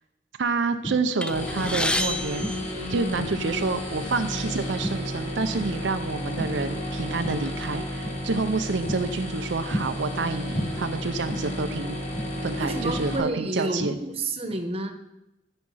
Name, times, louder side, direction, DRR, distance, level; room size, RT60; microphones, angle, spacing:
voice 1, 0.4-2.5 2.9-12.0 12.4-14.0, right 4 dB, 80° right, 8 dB, 0.6 m, -28 dB
sound 1, 0.6-1.9 2.3-3.6 4.0-4.4 4.8-5.9 6.2-6.8 7.2-7.5 8.0-8.2 8.6-10.2 10.5-11.7 12.0-13.5 13.8-14.1, equal, 55° left, 4.7 m, -34 dB
sound 2, 1.2-3.5 4.4-4.5 4.8-5.0 5.9-6.0 6.5-7.7, left 1 dB, 5° left, 0.3 m, -31 dB
sound 3, 1.3-13.2, left 1 dB, 40° left, 2.4 m, -32 dB
voice 2, 12.6-14.9, right 2 dB, 30° right, 6 dB, 1.0 m, -29 dB
14.5 x 5.3 x 5.5 m, 0.88 s
head